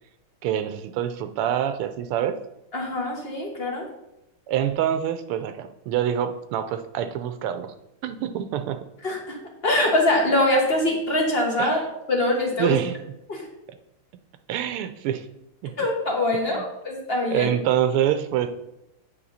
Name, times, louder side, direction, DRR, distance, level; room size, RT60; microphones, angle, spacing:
voice 1, 0.4-2.4 4.5-7.7 8.0-8.8 11.6-11.8 12.6-13.0 14.5-15.3 15.6-15.7 16.5-16.6 17.3-18.7, right 10 dB, 85° right, 10 dB, 1.5 m, -26 dB
voice 2, 2.7-3.9 9.0-9.4 9.6-11.8 12.1-12.8 13.3-13.5 15.8-17.5, left 1 dB, 30° left, 0 dB, 1.4 m, -23 dB
8.6 x 5.5 x 4.1 m, 0.87 s
omnidirectional pair, 2.4 m